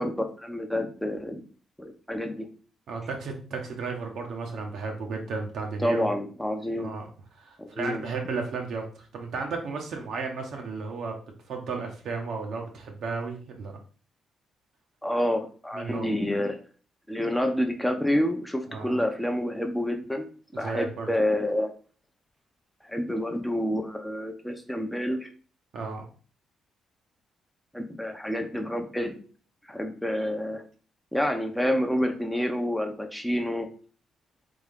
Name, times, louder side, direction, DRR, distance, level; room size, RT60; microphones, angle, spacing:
voice 1, 0.0-1.4 1.8-2.5 5.8-6.9 7.6-8.0 15.0-16.6 17.1-20.3 20.5-21.7 22.8-25.3 27.7-29.1 29.7-30.6 31.1-33.7, left 1 dB, 5° left, 4 dB, 0.7 m, -28 dB
voice 2, 2.9-6.1 6.8-7.1 7.3-11.1 11.5-13.8 15.7-16.1 18.7-19.0 20.6-21.1 25.7-26.0, right 4 dB, 70° right, 2 dB, 1.0 m, -34 dB
3.6 x 3.5 x 3.5 m, 0.40 s
cardioid pair, 80°, 0 cm